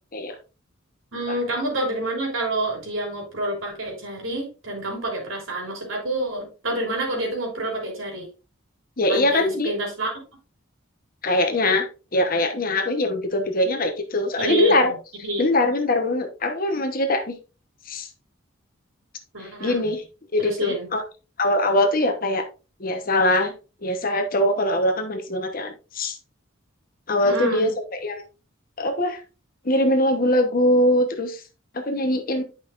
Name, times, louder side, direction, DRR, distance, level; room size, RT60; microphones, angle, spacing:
voice 1, 1.1-8.3 9.1-10.1 14.4-14.9 15.2-15.5 19.3-19.9 20.4-20.9 27.2-27.7, right 1 dB, 80° right, 0 dB, 3.2 m, -28 dB
voice 2, 9.0-9.7 11.2-11.9 12.1-14.9 15.4-17.3 17.9-18.1 19.4-20.0 20.3-21.0 21.4-22.4 22.8-23.5 23.8-26.2 27.1-27.7 28.0-28.3 28.8-29.2 29.6-31.4 31.7-32.4, left 1 dB, 45° left, 5 dB, 1.0 m, -22 dB
10.5 x 5.5 x 2.5 m, 0.32 s
head